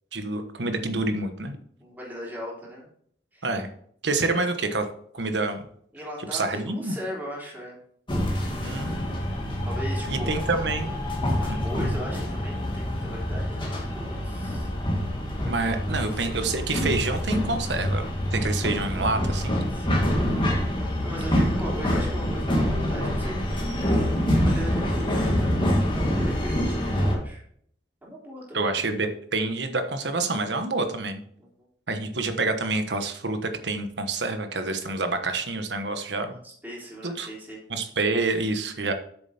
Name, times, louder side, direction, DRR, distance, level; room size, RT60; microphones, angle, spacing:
voice 1, 0.1-1.6 3.4-3.7 4.0-4.8 5.1-5.7 6.3-7.0 8.6-9.0 9.5-9.6 10.1-10.9 11.5-11.6 15.3-18.0 18.3-19.6 28.5-31.2 31.9-36.4 37.0-37.3 37.7-38.9, right 3 dB, 75° right, 7 dB, 1.2 m, -27 dB
voice 2, 1.8-2.9 3.3-3.5 4.2-4.4 5.9-7.8 9.6-10.4 11.4-14.7 15.9-16.2 19.7-20.3 20.8-23.7 24.2-27.4 28.0-28.8 31.4-31.5 36.3-37.6, equal, 10° right, -5 dB, 3.4 m, -38 dB
sound 1, 8.1-27.2, equal, 30° left, 2.0 m, -26 dB
8.3 x 6.9 x 4.2 m, 0.64 s
head